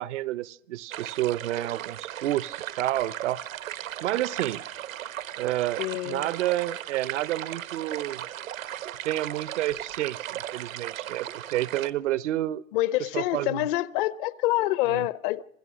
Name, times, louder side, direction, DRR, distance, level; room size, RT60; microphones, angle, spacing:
voice 1, 0.0-3.4 4.0-4.6 5.4-8.2 9.0-12.6 13.1-13.7 14.9-15.1, right 14 dB, 60° right, 0.8 m, -29 dB
sound 1, 0.9-11.9, right 12 dB, 80° right, 1.3 m, -37 dB
voice 2, 5.8-6.3 12.7-15.4, left 16 dB, 40° left, 0.7 m, -26 dB
27.0 x 16.5 x 6.2 m
hypercardioid pair, 135°, 40 cm